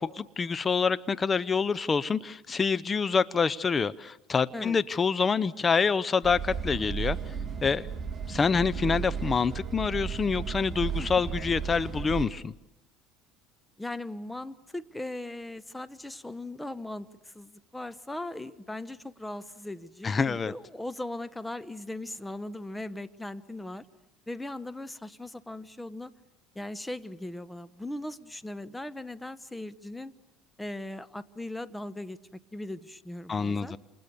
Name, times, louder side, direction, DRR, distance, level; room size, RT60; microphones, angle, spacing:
voice 1, 0.0-7.2 7.6-7.9 8.3-12.5 20.0-20.5 33.3-33.8, left 5 dB, 25° left, 0.9 m, -26 dB
sound 1, 6.2-12.3, right 6 dB, 30° right, 1.8 m, -34 dB
voice 2, 13.8-23.9 24.3-26.1 26.5-30.1 30.6-32.2 32.5-33.7, left 1 dB, 10° left, 1.1 m, -39 dB
28.5 x 28.0 x 7.0 m
supercardioid pair, 90°, 0 cm